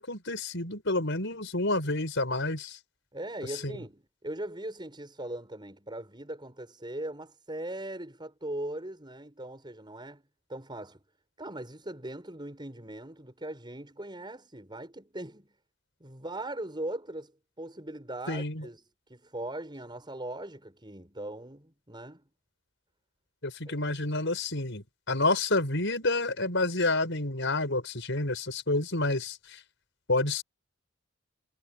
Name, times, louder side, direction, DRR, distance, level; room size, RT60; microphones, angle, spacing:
voice 1, 0.0-2.8 3.6-3.8 18.3-18.6 23.4-29.6 30.1-30.4, left 2 dB, 65° left, 6.6 m, -29 dB
voice 2, 3.1-10.2 10.5-11.0 11.4-15.5 16.0-17.3 17.6-18.8 19.1-22.2 23.7-23.8, right 1 dB, 20° right, 7.2 m, -39 dB
head